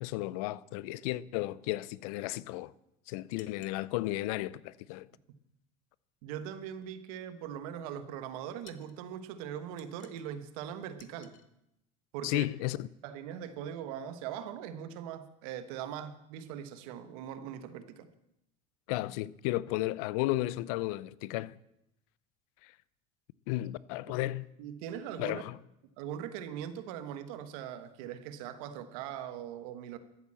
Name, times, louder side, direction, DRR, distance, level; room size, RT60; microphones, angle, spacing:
voice 1, 0.0-2.7 3.1-5.1 12.2-12.9 18.9-21.6 23.5-24.5 25.2-25.6, left 17 dB, 80° left, 0.6 m, -33 dB
sound 1, 3.4-3.8 8.6-9.0 9.8-10.4 11.0-11.5, left 10 dB, 45° left, 1.1 m, -58 dB
voice 2, 6.2-11.3 12.1-12.5 13.0-18.1 24.2-24.3 24.6-25.4 26.0-30.0, right 9 dB, 80° right, 1.4 m, -41 dB
13.5 x 8.4 x 7.6 m
supercardioid pair, 115°, 18 cm